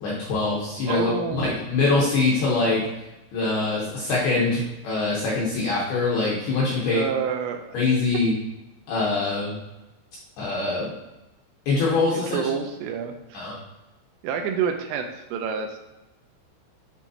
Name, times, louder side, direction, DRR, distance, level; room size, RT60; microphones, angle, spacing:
voice 1, 0.0-2.8 3.3-7.0 7.7-8.3 8.9-9.6 10.4-10.9 11.7-12.4 13.3-13.5, left 3 dB, 70° left, -6 dB, 2.4 m, -23 dB
voice 2, 0.9-1.6 6.9-7.6 12.1-13.4 14.2-15.8, right 7 dB, 85° right, 4 dB, 3.1 m, -28 dB
9.0 x 4.6 x 2.8 m, 0.99 s
omnidirectional pair, 5.9 m